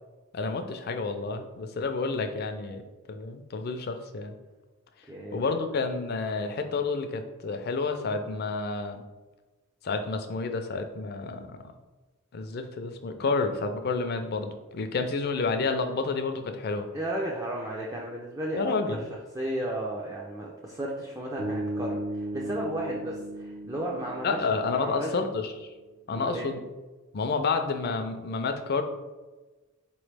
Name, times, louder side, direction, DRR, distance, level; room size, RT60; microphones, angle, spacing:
voice 1, 0.3-2.8 3.1-4.4 5.3-9.0 9.8-11.6 12.3-16.9 18.6-19.0 24.2-25.7 26.1-26.6 27.1-28.8, left 4 dB, 50° left, 7 dB, 0.4 m, -30 dB
voice 2, 5.1-5.5 16.9-19.0 19.3-24.5 24.7-25.2 26.1-26.5, right 1 dB, 15° right, -3 dB, 0.4 m, -34 dB
Bass guitar, 21.4-25.5, right 1 dB, 55° right, 0.8 m, -36 dB
4.2 x 3.0 x 3.3 m, 1.2 s
head